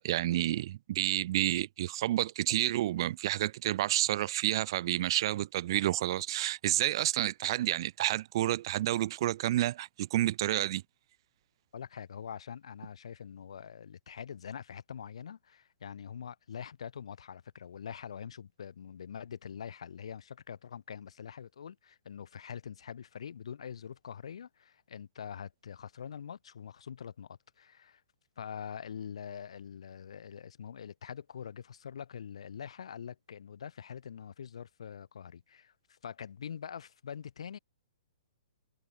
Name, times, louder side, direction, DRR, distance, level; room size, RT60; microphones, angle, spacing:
voice 1, 0.0-10.8, right 14 dB, 45° right, 0.6 m, -30 dB
voice 2, 11.7-28.0 28.4-37.6, left 8 dB, 60° left, 1.2 m, -44 dB
figure-of-eight pair, 120°, 3 cm